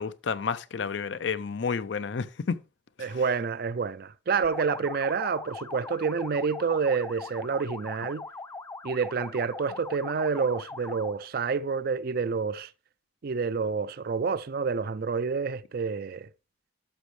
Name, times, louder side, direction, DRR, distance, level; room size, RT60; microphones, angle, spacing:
voice 1, 0.0-2.6 3.0-3.2, left 5 dB, 70° left, 0.5 m, -31 dB
voice 2, 3.0-8.3 8.8-12.7 13.2-16.3, right 5 dB, 50° right, 0.4 m, -28 dB
sound 1, 4.4-11.2, left 3 dB, 15° left, 0.3 m, -41 dB
11.5 x 6.3 x 3.2 m
head